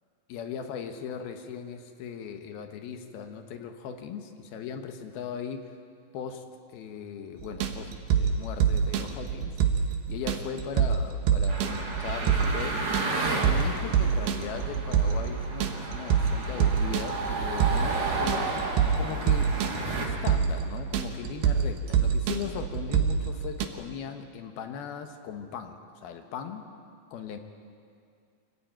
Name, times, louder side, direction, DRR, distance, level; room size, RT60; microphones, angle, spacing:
voice 1, 0.3-5.7 6.1-6.4 6.7-9.6 10.1-12.8 13.4-18.7 19.0-19.6 20.0-26.6 27.1-27.4, left 7 dB, 80° left, 6 dB, 3.2 m, -38 dB
sound 1, 7.4-23.7, right 7 dB, 85° right, 3.1 m, -26 dB
sound 2, 11.5-20.1, right 3 dB, 45° right, 3.9 m, -32 dB
24.5 x 15.5 x 9.0 m, 2.3 s
omnidirectional pair, 4.3 m